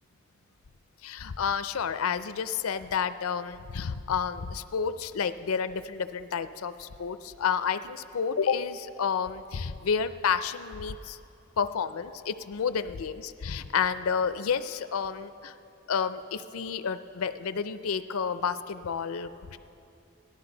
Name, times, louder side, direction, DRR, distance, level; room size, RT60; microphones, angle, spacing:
voice 1, 1.0-11.2 11.6-15.5 15.9-19.6, left 6 dB, 85° left, 12 dB, 0.5 m, -30 dB
18.5 x 12.0 x 3.9 m, 2.8 s
head